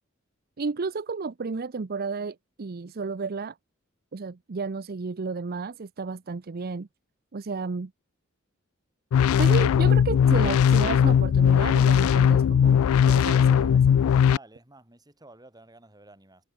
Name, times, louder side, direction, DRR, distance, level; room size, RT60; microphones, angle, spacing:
voice 1, 0.6-3.6 4.1-6.9 7.3-7.9 9.4-13.9, right 4 dB, 45° right, 0.6 m, -32 dB
sound 1, 9.1-14.4, left 8 dB, 75° left, 0.3 m, -19 dB
voice 2, 14.3-16.4, right 2 dB, 20° right, 6.6 m, -51 dB
head